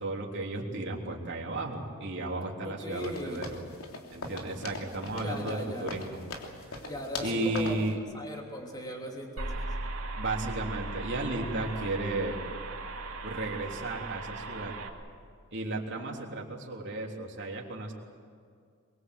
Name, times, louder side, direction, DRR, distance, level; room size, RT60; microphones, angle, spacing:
voice 1, 0.0-3.6 4.1-6.2 7.2-8.0 10.2-12.4 13.2-14.7 15.5-17.9, right 2 dB, 55° right, -1 dB, 3.5 m, -34 dB
voice 2, 2.6-3.4 5.2-5.9 6.8-7.8 8.1-9.7, equal, 20° left, 0 dB, 3.2 m, -38 dB
sound 1, 3.0-7.9, left 2 dB, 75° left, 3.2 m, -41 dB
sound 2, 9.4-14.9, right 2 dB, 70° right, 2.7 m, -38 dB
23.5 x 23.0 x 8.0 m, 2.2 s
head